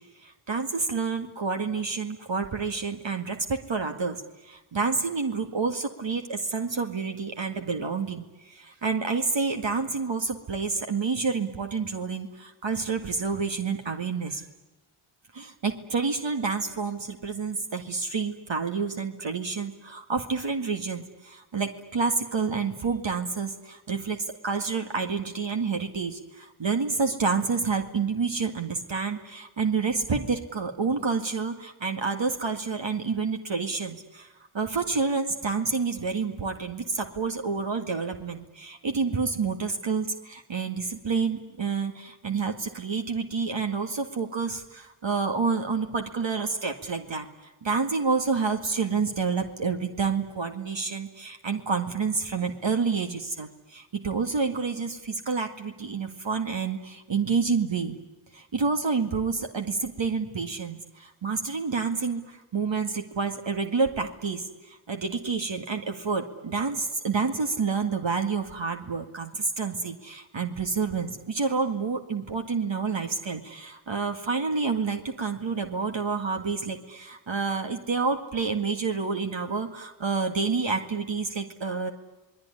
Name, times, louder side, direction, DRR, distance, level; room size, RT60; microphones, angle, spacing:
voice 1, 0.2-14.4 15.3-24.2 24.4-34.3 34.5-47.3 47.6-58.0 58.3-81.9, right 4 dB, 65° right, 5 dB, 2.1 m, -29 dB
27.5 x 20.5 x 9.9 m, 1.1 s
cardioid pair, 45°, 48 cm